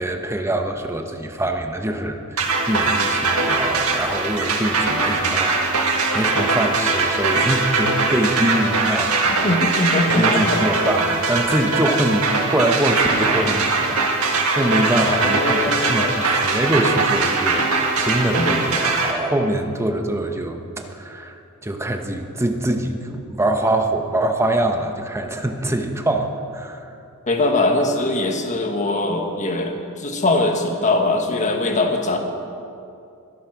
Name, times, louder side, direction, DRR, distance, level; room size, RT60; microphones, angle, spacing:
voice 1, 0.0-2.4 2.7-9.8 10.1-21.4 21.6-26.9, right 1 dB, 10° right, 5 dB, 1.0 m, -24 dB
sound 1, 2.4-19.1, right 3 dB, 85° right, 1.8 m, -21 dB
voice 2, 9.3-10.6 15.0-16.1 18.3-18.6 27.3-32.2, left 2 dB, 35° left, 3 dB, 1.5 m, -22 dB
22.5 x 8.5 x 5.9 m, 2.6 s
head